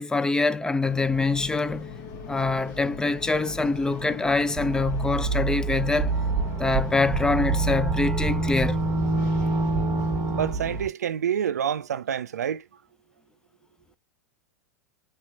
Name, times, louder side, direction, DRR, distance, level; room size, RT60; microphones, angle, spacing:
voice 1, 0.0-1.9 2.3-6.1 6.6-8.8, left 3 dB, 10° left, 0.4 m, -25 dB
sound 1, 0.8-10.8, left 4 dB, 50° left, 1.4 m, -40 dB
sound 2, 4.6-10.9, right 3 dB, 20° right, 1.3 m, -26 dB
voice 2, 10.3-12.6, right 8 dB, 85° right, 0.4 m, -27 dB
4.3 x 3.4 x 2.3 m
hypercardioid pair, 95°, 9 cm